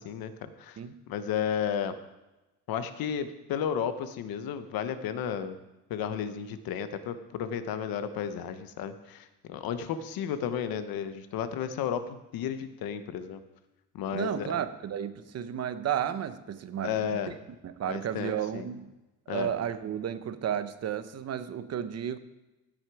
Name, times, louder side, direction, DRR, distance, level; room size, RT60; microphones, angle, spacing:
voice 1, 0.0-0.8 1.1-2.0 2.7-5.6 5.9-13.4 13.9-14.5 16.8-17.3 17.9-18.7 19.3-19.5, left 8 dB, 85° left, 10 dB, 1.0 m, -33 dB
voice 2, 14.1-17.2 17.6-18.9 19.3-22.2, right 9 dB, 45° right, 12 dB, 0.8 m, -33 dB
16.0 x 6.3 x 4.8 m, 1.0 s
cardioid pair, 140°, 35 cm